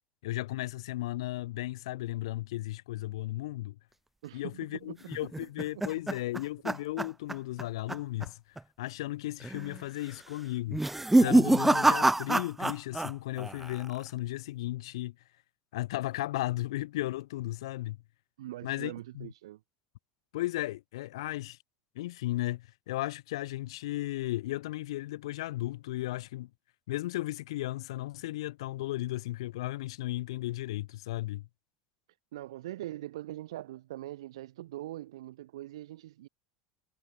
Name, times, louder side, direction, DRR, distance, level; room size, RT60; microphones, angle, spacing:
voice 1, 0.2-3.8 4.3-10.8 11.2-15.2 15.7-18.0 18.6-19.3 20.3-21.6 22.0-26.5 26.9-31.5, left 16 dB, 80° left, 7.2 m, -35 dB
voice 2, 4.2-4.9 5.2-5.5 5.7-5.8 18.4-19.6 32.3-36.3, right 15 dB, 80° right, 2.2 m, -42 dB
sound 1, 5.1-7.6 7.9-8.3 8.6-8.7 9.4-9.8 10.7-13.1 13.4-14.0, right 2 dB, 5° right, 0.6 m, -26 dB
hypercardioid pair, 95°, 3 cm